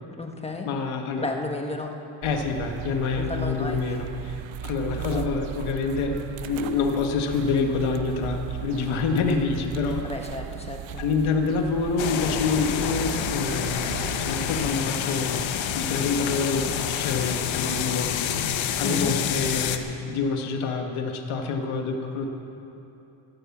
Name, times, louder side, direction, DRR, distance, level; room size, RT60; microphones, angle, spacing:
voice 1, 0.1-0.7 1.2-1.9 3.1-3.9 5.0-5.3 10.0-11.0 18.8-19.2, left 2 dB, 15° left, 3 dB, 1.3 m, -33 dB
voice 2, 0.6-1.3 2.2-4.4 4.6-6.2 6.5-10.0 11.0-18.3 18.8-22.3, left 4 dB, 85° left, 4 dB, 1.7 m, -27 dB
sound 1, 2.2-14.8, right 11 dB, 70° right, 0.8 m, -37 dB
sound 2, 12.0-19.8, left 9 dB, 65° left, 1.1 m, -28 dB
15.0 x 12.0 x 7.3 m, 2.9 s
cardioid pair, 135°, 48 cm